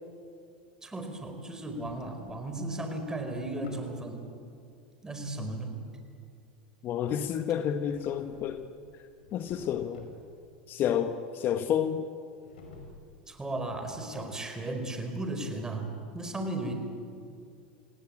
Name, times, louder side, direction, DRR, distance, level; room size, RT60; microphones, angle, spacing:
voice 1, 0.8-4.2 5.0-5.7 13.3-15.9 16.1-16.7, right 2 dB, 10° right, 5 dB, 4.8 m, -35 dB
Drawer open or close, 1.5-2.5 2.9-3.9 7.6-8.7 9.1-10.2 12.4-13.1 13.4-14.7, left 2 dB, 75° left, 5.5 m, -51 dB
voice 2, 6.8-8.7 9.3-10.1 10.7-12.1, left 9 dB, 45° left, 9 dB, 1.3 m, -30 dB
28.0 x 18.0 x 8.9 m, 2.4 s
hypercardioid pair, 95°, 5 cm